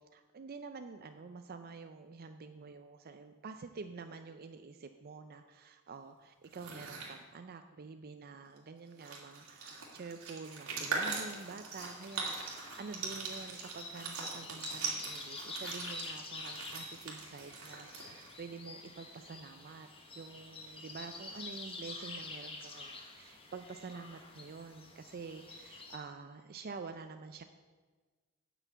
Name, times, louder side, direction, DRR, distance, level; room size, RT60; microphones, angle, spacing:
voice 1, 0.1-19.9 20.2-27.4, right 4 dB, 45° right, 8 dB, 0.5 m, -48 dB
sound 1, 6.4-7.1 8.6-8.7 8.9-18.4, right 4 dB, 75° right, 2.4 m, -41 dB
sound 2, 11.7-26.0, left 3 dB, 25° left, 1.2 m, -48 dB
9.0 x 6.1 x 8.2 m, 1.4 s
head